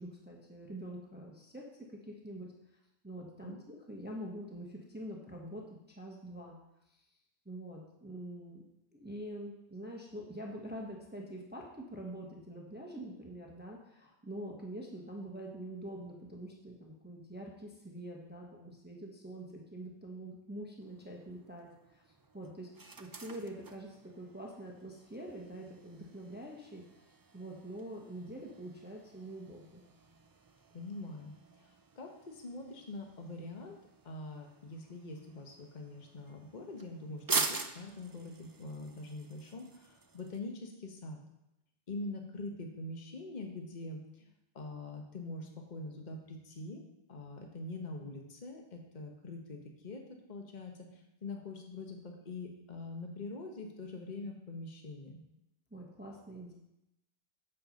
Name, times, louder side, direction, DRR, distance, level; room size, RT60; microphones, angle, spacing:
voice 1, 0.0-1.6 2.0-2.5 3.0-5.6 6.0-6.6 6.9-7.0 7.4-8.6 8.9-22.0 22.3-22.7 23.0-26.8 27.3-29.8 55.7-56.5, right 1 dB, 10° right, -1 dB, 1.1 m, -45 dB
sound 1, 20.8-40.4, right 4 dB, 35° right, 0.3 m, -44 dB
voice 2, 30.7-31.3 31.6-33.8 34.0-41.2 41.9-44.3 44.5-46.8 47.1-55.2, left 2 dB, 40° left, 2 dB, 1.2 m, -44 dB
7.9 x 7.4 x 5.2 m, 0.87 s
omnidirectional pair, 1.2 m